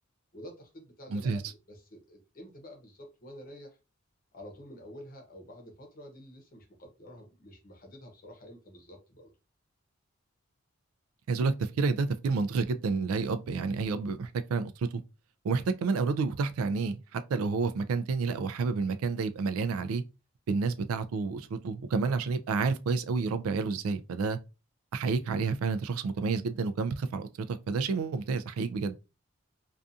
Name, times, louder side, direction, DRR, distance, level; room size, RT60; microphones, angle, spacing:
voice 1, 0.3-3.8 4.3-9.3 22.6-22.7, equal, 40° left, 0.7 m, -49 dB
voice 2, 1.1-1.4 11.3-15.0 15.4-20.0 20.5-24.4 24.9-29.0, right 4 dB, 85° right, 0.3 m, -30 dB
2.6 x 2.3 x 2.4 m
head